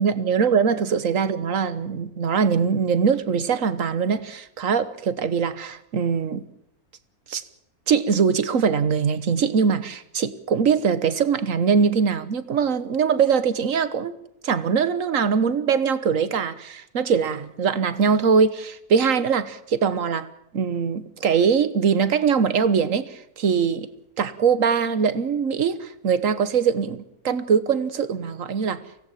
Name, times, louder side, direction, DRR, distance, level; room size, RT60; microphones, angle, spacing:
voice 1, 0.0-6.4 7.3-7.4 7.9-14.1 14.4-20.3 20.5-23.9 24.2-28.8, right 6 dB, 60° right, 14 dB, 1.6 m, -22 dB
24.0 x 17.5 x 7.4 m, 0.79 s
omnidirectional pair, 1.6 m